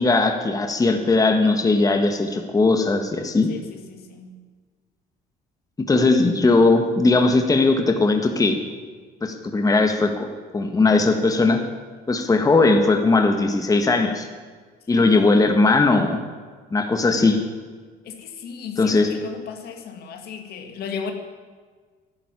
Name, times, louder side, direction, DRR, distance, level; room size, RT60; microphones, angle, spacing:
voice 1, 0.0-3.5 5.8-8.6 9.2-10.3 10.5-11.6 12.1-14.3 14.9-16.2 16.7-17.4 18.8-19.1, left 3 dB, 20° left, 5 dB, 1.6 m, -19 dB
voice 2, 3.5-4.4 14.9-15.2 18.0-21.1, left 6 dB, 70° left, 6 dB, 2.1 m, -35 dB
12.5 x 11.0 x 9.7 m, 1.5 s
cardioid pair, 110°, 17 cm